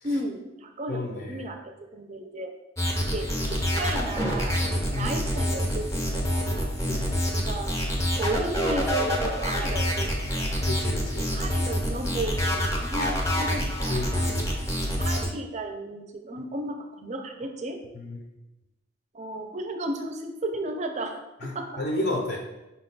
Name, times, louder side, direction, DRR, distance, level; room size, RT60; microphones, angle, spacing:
voice 1, 0.0-2.5 3.1-4.6 4.9-6.7 7.5-7.8 8.2-10.1 10.4-10.6 11.3-14.3 15.0-17.8 19.1-21.2 21.5-21.8, right 1 dB, 35° right, 5 dB, 0.5 m, -34 dB
voice 2, 0.9-1.5 4.9-5.2 6.8-7.2 10.6-11.3 13.0-13.1 13.9-14.5 17.9-18.2 21.4-22.4, left 2 dB, 55° left, 0 dB, 0.6 m, -32 dB
sound 1, 2.8-15.3, equal, 15° left, 0.6 m, -27 dB
5.2 x 2.2 x 3.9 m, 0.97 s
head